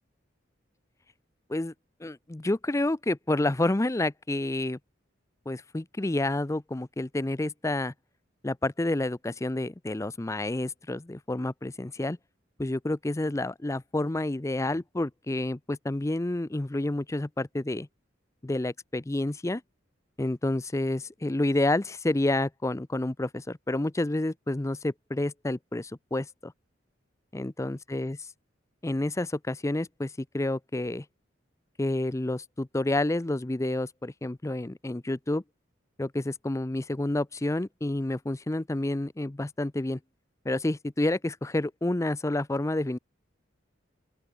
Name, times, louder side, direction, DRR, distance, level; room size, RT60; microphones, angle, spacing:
voice 1, 2.0-4.8 5.5-7.9 8.4-12.2 12.6-17.9 18.4-19.6 20.2-26.5 27.3-28.2 28.8-31.0 31.8-35.4 36.0-40.0 40.4-43.0, left 1 dB, 15° left, 0.5 m, -29 dB
open air
head